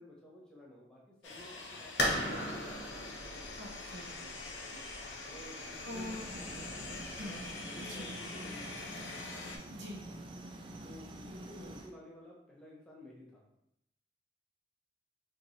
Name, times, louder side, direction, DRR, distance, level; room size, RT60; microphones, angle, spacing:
voice 1, 0.0-2.6 4.7-4.8 5.2-8.8 10.8-13.4, left 1 dB, 5° left, -4 dB, 0.8 m, -53 dB
sound 1, 1.2-9.6, left 3 dB, 85° left, 0.7 m, -45 dB
sound 2, 2.0-7.5, left 1 dB, 65° left, 1.0 m, -38 dB
voice 2, 3.6-4.1 5.8-6.3 7.2-7.4 7.9-8.1 9.7-10.0, left 1 dB, 70° right, -1 dB, 0.9 m, -44 dB
sound 3, 5.9-11.9, right 1 dB, 25° right, 0.3 m, -47 dB
4.5 x 2.9 x 2.7 m, 0.80 s
head